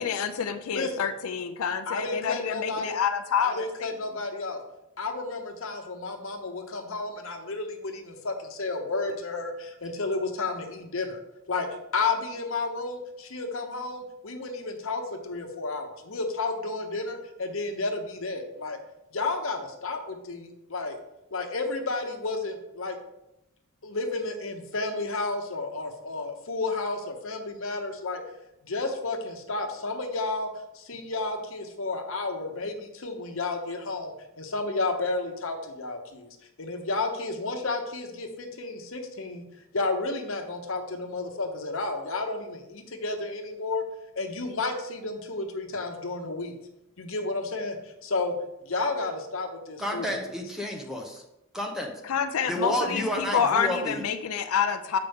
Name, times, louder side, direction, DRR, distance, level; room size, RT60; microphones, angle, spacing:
voice 1, 0.0-3.9 52.0-55.0, left 7 dB, 90° left, 8 dB, 0.5 m, -28 dB
voice 2, 1.9-3.0 3.4-4.6 5.0-11.2 11.5-11.7 11.9-18.8 19.1-21.0 21.3-23.0 23.8-28.2 28.6-30.5 30.7-36.3 36.6-39.4 39.7-43.8 44.1-46.5 47.0-48.3 48.6-50.1, left 3 dB, 70° left, 4 dB, 1.0 m, -32 dB
voice 3, 49.8-51.2 51.5-51.9 52.5-54.1, equal, ahead, 1 dB, 0.9 m, -30 dB
7.8 x 5.1 x 3.5 m, 0.87 s
head